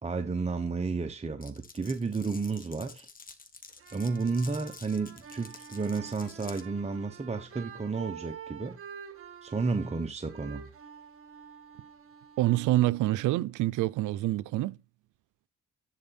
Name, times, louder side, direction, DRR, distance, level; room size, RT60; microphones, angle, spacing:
voice 1, 0.0-3.1 3.9-8.8 9.4-10.7, right 4 dB, 20° right, 1.0 m, -32 dB
Glass, 1.4-6.7, left 4 dB, 30° left, 1.4 m, -50 dB
sound 1, 3.7-13.5, right 7 dB, 45° right, 1.7 m, -48 dB
voice 2, 12.4-14.7, right 16 dB, 85° right, 0.5 m, -26 dB
11.0 x 4.0 x 4.3 m
cardioid pair, 90°, 30 cm